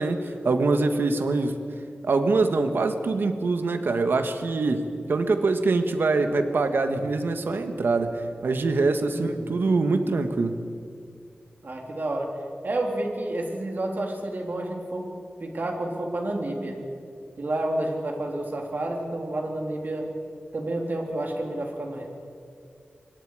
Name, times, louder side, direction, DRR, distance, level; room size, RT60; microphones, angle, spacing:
voice 1, 0.0-1.6 2.0-10.6, right 3 dB, 85° right, 7 dB, 1.6 m, -24 dB
voice 2, 9.1-9.6 11.6-12.4 12.6-15.1 15.4-16.8 17.4-20.1 20.5-22.1, right 1 dB, 60° right, 1 dB, 3.7 m, -30 dB
26.0 x 22.5 x 5.0 m, 2.3 s
wide cardioid pair, 70°, 4 cm